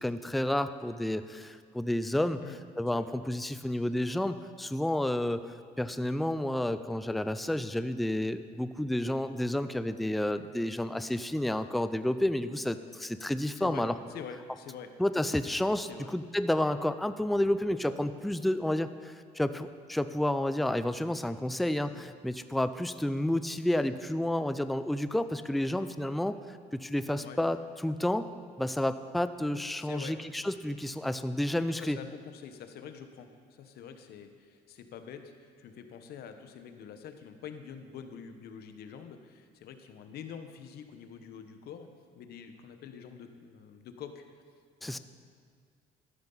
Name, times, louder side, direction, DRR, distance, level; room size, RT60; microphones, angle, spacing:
voice 1, 0.0-2.4 2.8-5.4 5.8-13.9 15.0-28.3 28.6-32.0 44.8-45.0, left 1 dB, ahead, 11 dB, 0.4 m, -30 dB
voice 2, 13.6-14.9 15.8-16.1 21.9-22.0 27.2-27.4 29.8-30.2 31.7-44.2 44.8-45.0, left 7 dB, 70° left, 7 dB, 1.0 m, -46 dB
13.5 x 11.0 x 4.0 m, 2.2 s
cardioid pair, 110°, 17 cm